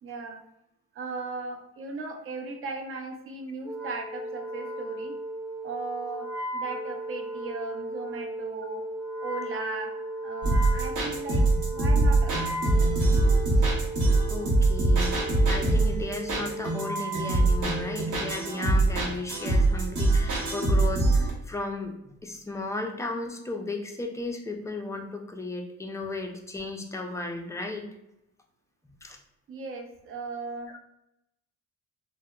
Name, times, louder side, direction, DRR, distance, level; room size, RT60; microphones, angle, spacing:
voice 1, 0.0-0.4 0.9-5.2 5.6-6.3 6.5-8.8 9.2-9.9 10.2-11.4 11.7-12.4 29.5-30.7, right 3 dB, 45° right, 4 dB, 0.5 m, -37 dB
Wind instrument woodwind instrument, 3.6-18.4, right 1 dB, 10° right, 0.8 m, -36 dB
sound 1, 10.4-21.3, right 2 dB, 70° right, 0.9 m, -23 dB
voice 2, 14.3-27.9 29.0-29.2, left 2 dB, 10° left, 2 dB, 0.3 m, -35 dB
2.7 x 2.1 x 2.2 m, 0.85 s
cardioid pair, 90°, 30 cm